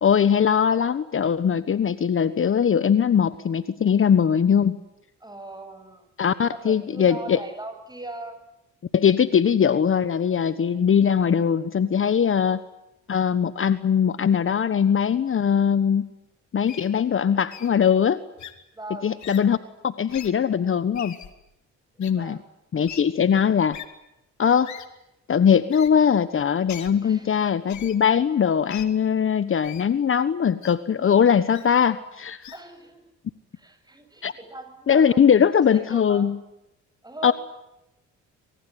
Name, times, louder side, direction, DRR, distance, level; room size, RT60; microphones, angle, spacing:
voice 1, 0.0-4.8 6.2-7.4 8.9-12.6 13.1-16.1 16.5-18.2 19.0-19.6 19.8-21.2 22.0-22.4 22.7-23.8 24.4-24.7 25.3-32.4 34.2-34.3 34.9-36.4 37.2-37.3, left 7 dB, 45° left, 14 dB, 1.3 m, -21 dB
voice 2, 5.2-6.0 6.5-8.4 18.7-19.1 22.2-22.4 27.0-27.3 32.5-33.0 33.5-36.3 37.0-37.3, right 2 dB, 15° right, 7 dB, 8.0 m, -39 dB
Wild animals, 16.7-16.9 17.5-17.7 18.4-18.5 19.2-19.4 20.1-20.3 20.9-21.3 22.0-22.1 22.9-23.0 23.7-23.9 24.6-24.9 25.7-25.9 26.7-26.9 27.7-28.0 28.7-28.9 29.6-29.9 30.6-30.7 31.5-31.7 32.4-32.6, left 10 dB, 70° left, 2.9 m, -40 dB
25.5 x 23.0 x 9.4 m, 0.88 s
cardioid pair, 90°, 30 cm